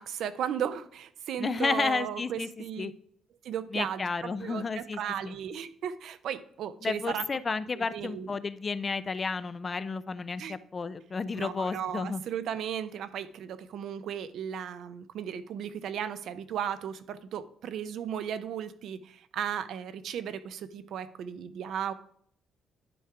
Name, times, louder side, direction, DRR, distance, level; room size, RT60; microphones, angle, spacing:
voice 1, 0.0-2.9 3.4-7.3 7.7-8.3 10.4-10.6 11.4-21.9, right 9 dB, 70° right, 13 dB, 0.5 m, -35 dB
voice 2, 1.4-2.5 2.8-2.9 3.7-5.3 6.8-12.2, left 4 dB, 25° left, 15 dB, 0.3 m, -32 dB
10.0 x 3.6 x 4.7 m, 0.62 s
cardioid pair, 135°, 0 cm